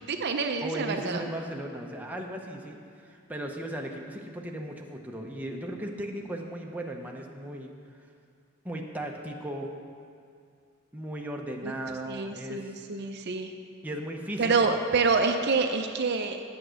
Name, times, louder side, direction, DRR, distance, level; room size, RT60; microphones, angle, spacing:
voice 1, 0.1-1.3 11.6-11.7 12.1-13.5 14.4-16.4, right 4 dB, 50° right, 6 dB, 0.6 m, -27 dB
voice 2, 0.6-2.8 3.0-8.1 8.6-9.7 10.9-12.7 13.8-14.7, right 1 dB, 5° right, 0 dB, 0.7 m, -36 dB
8.6 x 7.9 x 6.3 m, 2.3 s
head